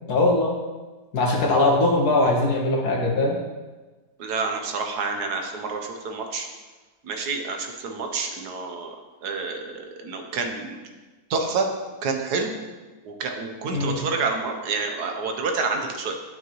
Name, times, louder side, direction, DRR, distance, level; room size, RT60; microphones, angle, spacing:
voice 1, 0.1-0.6 1.1-3.4 13.7-14.0, left 2 dB, 80° left, -1 dB, 1.9 m, -21 dB
voice 2, 4.2-6.5 7.0-8.9 9.2-10.8 11.3-11.7 12.0-12.5 13.0-16.1, right 4 dB, 90° right, 4 dB, 1.5 m, -28 dB
11.5 x 5.8 x 3.1 m, 1.2 s
omnidirectional pair, 1.7 m